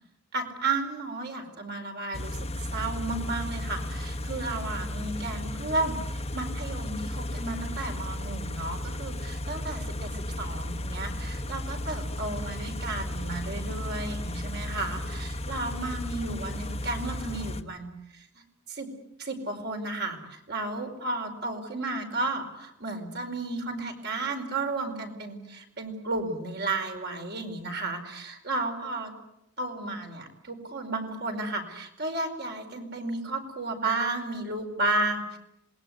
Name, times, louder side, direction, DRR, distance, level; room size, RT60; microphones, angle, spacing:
voice 1, 0.3-18.3 18.7-18.9 19.2-29.1 29.6-35.4, right 2 dB, 50° right, 4 dB, 4.9 m, -33 dB
Car / Idling, 2.1-17.6, left 1 dB, 30° left, 1.3 m, -34 dB
27.0 x 21.0 x 9.5 m, 0.81 s
head